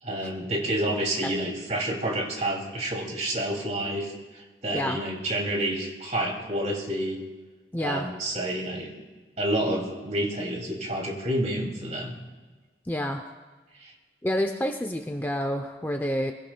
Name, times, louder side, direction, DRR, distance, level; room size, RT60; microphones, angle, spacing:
voice 1, 0.0-7.2 7.8-8.9 9.4-12.2 13.8-13.9, right 1 dB, 40° right, 0 dB, 2.7 m, -29 dB
voice 2, 7.7-8.1 12.9-13.2 14.2-16.3, equal, 10° left, 4 dB, 0.6 m, -28 dB
22.5 x 16.5 x 2.3 m, 1.3 s
head